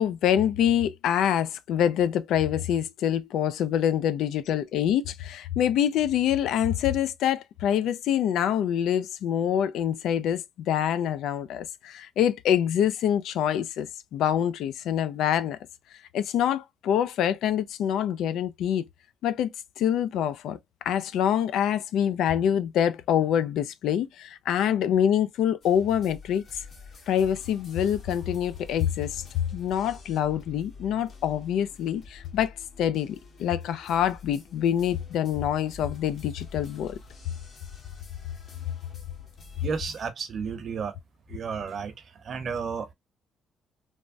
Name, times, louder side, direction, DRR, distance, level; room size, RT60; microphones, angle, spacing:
voice 1, 0.0-15.6 16.1-18.9 19.2-20.6 20.9-26.6 27.1-29.2 29.5-37.0, left 9 dB, 85° left, 0.3 m, -25 dB
sound 1, 25.6-40.1, left 4 dB, 50° left, 1.2 m, -48 dB
voice 2, 39.6-41.0 41.3-41.9 42.2-42.9, right 6 dB, 55° right, 0.8 m, -32 dB
3.3 x 2.0 x 2.5 m
cardioid pair, 90°, 0 cm